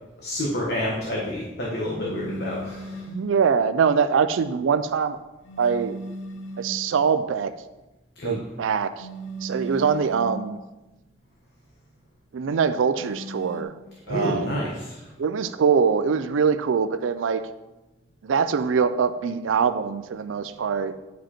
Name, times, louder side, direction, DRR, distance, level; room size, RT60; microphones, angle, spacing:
voice 1, 0.2-3.1 8.2-8.4 14.1-15.0, left 1 dB, 55° left, -3 dB, 1.2 m, -28 dB
sound 1, 2.0-3.3 5.5-6.9 9.0-10.5 13.0-13.6, right 1 dB, 80° left, 0.6 m, -37 dB
voice 2, 3.1-5.2 5.6-6.0 6.6-7.5 8.2-9.1 9.4-10.6 12.3-13.7 14.1-14.6 15.2-17.4 18.2-20.9, right 6 dB, 90° right, 11 dB, 0.4 m, -23 dB
9.1 x 5.2 x 4.3 m, 1.0 s
head